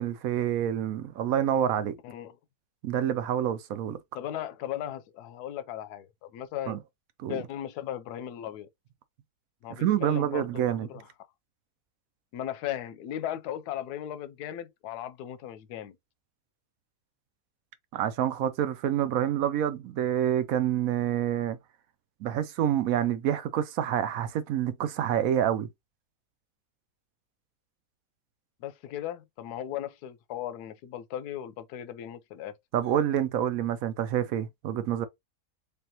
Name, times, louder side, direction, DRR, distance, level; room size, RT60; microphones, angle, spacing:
voice 1, 0.0-2.0 2.8-4.0 6.7-6.8 7.2-7.4 9.7-10.9 17.9-21.6 22.2-25.7 32.7-35.1, right 10 dB, 70° right, 1.0 m, -27 dB
voice 2, 2.0-2.4 4.1-6.8 7.3-8.7 9.6-11.1 12.3-16.0 28.6-32.5, left 11 dB, 90° left, 1.1 m, -37 dB
3.4 x 3.4 x 2.7 m
omnidirectional pair, 1.6 m